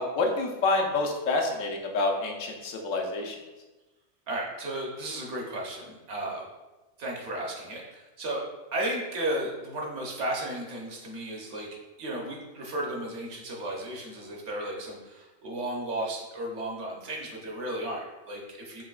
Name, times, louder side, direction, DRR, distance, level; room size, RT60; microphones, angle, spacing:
voice 1, 0.0-3.4, left 3 dB, 85° left, 2 dB, 1.0 m, -28 dB
voice 2, 4.3-6.4 7.0-8.4 8.7-11.7 12.0-18.8, right 1 dB, 70° right, -2 dB, 1.1 m, -34 dB
5.6 x 2.9 x 2.3 m, 1.1 s
omnidirectional pair, 1.3 m